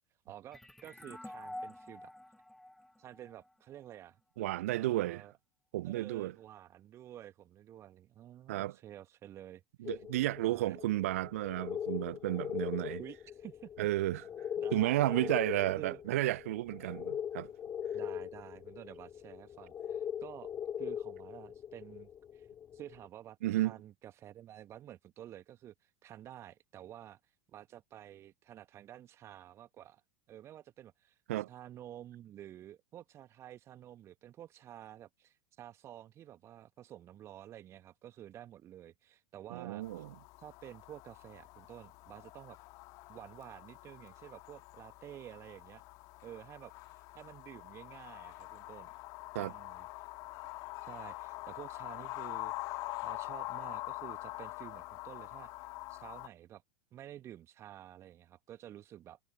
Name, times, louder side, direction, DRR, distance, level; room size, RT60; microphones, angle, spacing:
voice 1, 0.2-2.1 3.0-4.2 4.7-5.3 5.8-10.0 10.4-10.8 13.0-13.9 14.6-15.4 15.8-16.0 17.9-20.5 20.8-22.5 22.7-30.0 30.3-31.2 31.5-40.0 40.4-42.6 43.1-45.8 46.2-48.9 49.4-50.1 50.9-52.5 53.0-55.5 55.9-56.6 56.9-59.2, right 12 dB, 30° right, 1.4 m, -51 dB
sound 1, 0.5-3.9, left 1 dB, 5° left, 1.2 m, -48 dB
voice 2, 4.4-5.2 5.7-6.3 8.5-8.7 9.8-13.0 13.8-14.2 14.7-17.5 23.4-23.8 31.3-31.5 39.5-40.1 49.3-49.5, right 16 dB, 55° right, 0.9 m, -32 dB
sound 2, 9.8-23.1, left 9 dB, 25° left, 2.6 m, -41 dB
sound 3, 39.8-56.3, left 22 dB, 45° left, 1.5 m, -45 dB
figure-of-eight pair, 85°, 9 cm